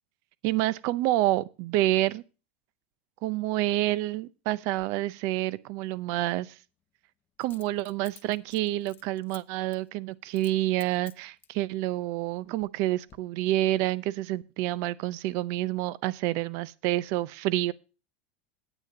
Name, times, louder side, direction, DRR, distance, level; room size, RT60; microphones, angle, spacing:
voice 1, 0.4-2.2 3.2-6.6 7.4-17.7, right 16 dB, 60° right, 0.6 m, -28 dB
Coin (dropping), 4.8-4.9 7.4-9.4 9.7-9.9 10.3-10.6 10.8-11.6 12.2-12.8 13.1-13.2, left 10 dB, 35° left, 0.8 m, -52 dB
9.1 x 9.0 x 5.0 m
supercardioid pair, 120°, 6 cm